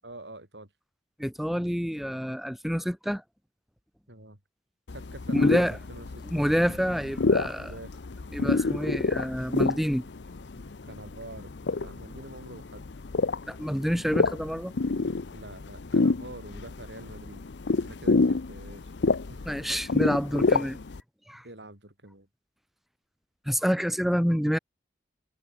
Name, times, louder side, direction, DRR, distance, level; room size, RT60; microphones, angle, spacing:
voice 1, 0.0-0.7 4.1-4.4 4.9-6.1 7.6-8.0 10.8-11.5 11.8-12.9 15.3-17.5 17.8-18.9 19.3-19.7 21.4-22.3, right 1 dB, 70° right, 7.5 m, -45 dB
voice 2, 1.2-3.2 5.3-5.8 6.3-7.7 8.3-10.0 13.5-14.7 19.5-20.8 21.3-21.4 23.5-24.6, equal, ahead, 1.6 m, -27 dB
sound 1, 4.9-21.0, left 3 dB, 75° left, 0.7 m, -28 dB
head